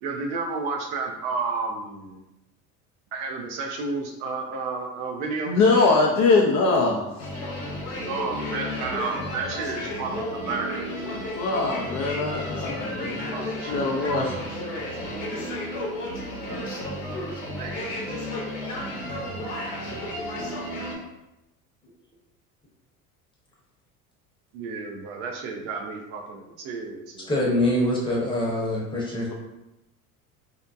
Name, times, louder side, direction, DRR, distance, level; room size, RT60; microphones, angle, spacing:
voice 1, 0.0-2.2 3.1-5.6 8.1-11.4 13.3-14.3 16.4-17.3 17.6-17.8 18.3-19.0 24.5-27.3, right 4 dB, 55° right, 2 dB, 0.5 m, -32 dB
voice 2, 5.5-7.3 11.3-13.3 13.6-14.4 29.3-29.4, left 3 dB, 40° left, -1 dB, 0.4 m, -22 dB
sound 1, 7.2-21.0, left 1 dB, 75° left, 0.8 m, -32 dB
voice 3, 27.3-29.3, left 1 dB, 10° left, -4 dB, 0.8 m, -24 dB
2.6 x 2.1 x 2.4 m, 0.94 s
figure-of-eight pair, 70°, 45 cm